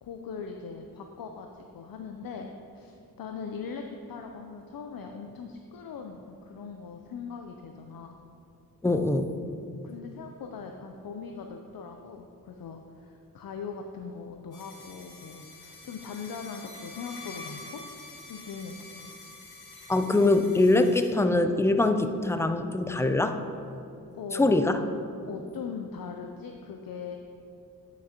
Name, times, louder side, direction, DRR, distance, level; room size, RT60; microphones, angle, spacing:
voice 1, 0.0-8.2 9.8-17.8 18.3-19.1 24.1-24.5 25.2-27.2, left 5 dB, 65° left, 4 dB, 0.5 m, -40 dB
voice 2, 8.8-9.3 19.9-23.4 24.3-24.8, left 2 dB, 10° left, 8 dB, 0.3 m, -23 dB
sound 1, 14.5-21.1, left 3 dB, 80° left, 1.5 m, -46 dB
9.0 x 6.0 x 2.9 m, 2.6 s
cardioid pair, 70°, 37 cm